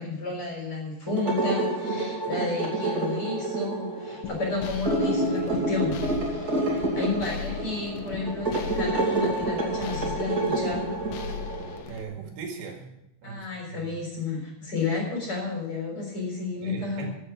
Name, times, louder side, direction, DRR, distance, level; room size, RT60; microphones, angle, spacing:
voice 1, 0.0-6.0 6.3-10.9 13.2-17.1, left 3 dB, 30° left, 0 dB, 4.4 m, -32 dB
sound 1, 1.1-11.8, right 2 dB, 25° right, 2.3 m, -28 dB
sound 2, 4.2-12.0, left 8 dB, 75° left, 2.9 m, -38 dB
voice 2, 11.9-13.0 13.2-13.9 16.6-17.1, right 6 dB, 75° right, 2 dB, 4.2 m, -39 dB
15.0 x 8.1 x 7.2 m, 0.83 s
omnidirectional pair, 5.1 m